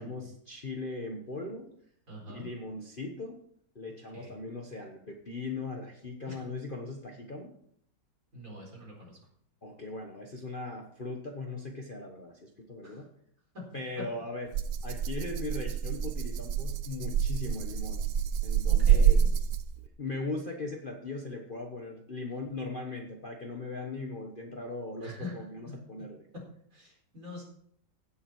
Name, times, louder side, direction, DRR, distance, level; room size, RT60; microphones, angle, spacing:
voice 1, 0.0-1.7 2.3-3.4 3.7-7.5 9.6-13.1 13.7-14.6 14.8-18.0 18.4-19.5 20.0-26.2, left 3 dB, 35° left, 1 dB, 1.2 m, -39 dB
voice 2, 2.1-2.5 4.1-4.3 6.3-6.4 8.3-9.2 12.8-13.0 13.5-13.7 14.0-14.1 18.7-19.3 25.0-25.4 25.7-25.8 26.3-26.4 26.7-27.4, left 2 dB, 45° right, -3 dB, 4.7 m, -44 dB
Rattle (instrument), 14.5-19.9, right 8 dB, 65° right, 1.0 m, -27 dB
16.0 x 7.3 x 4.7 m, 0.67 s
omnidirectional pair, 1.9 m